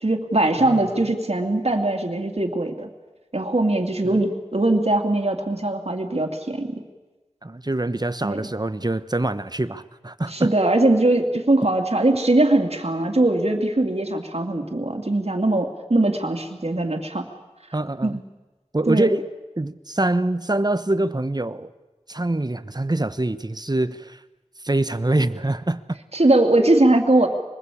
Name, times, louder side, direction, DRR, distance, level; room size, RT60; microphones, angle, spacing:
voice 1, 0.0-2.9 3.3-6.8 8.2-8.4 10.3-17.3 18.0-18.2 18.9-19.1 26.1-27.3, right 2 dB, 60° right, 3 dB, 2.7 m, -21 dB
voice 2, 7.4-10.5 17.7-18.2 18.7-19.3 19.6-21.7 22.1-24.2 24.6-26.0, right 2 dB, 35° right, 13 dB, 1.1 m, -24 dB
25.5 x 20.5 x 8.5 m, 1.1 s
wide cardioid pair, 45°, 12 cm